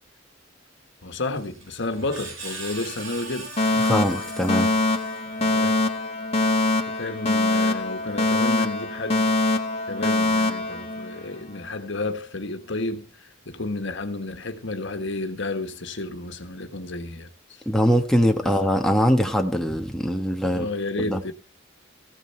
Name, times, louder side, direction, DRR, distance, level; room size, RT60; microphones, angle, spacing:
voice 1, 1.0-3.5 5.4-5.8 6.9-9.4 9.9-17.6 20.4-21.3, left 2 dB, 65° left, 1.5 m, -31 dB
Screech, 1.3-5.6, right 3 dB, 85° right, 5.6 m, -39 dB
Alarm, 3.6-11.6, left 2 dB, 30° left, 1.5 m, -23 dB
voice 2, 3.8-4.7 17.7-20.7 21.0-21.2, equal, 5° left, 1.2 m, -22 dB
15.5 x 9.1 x 4.4 m
head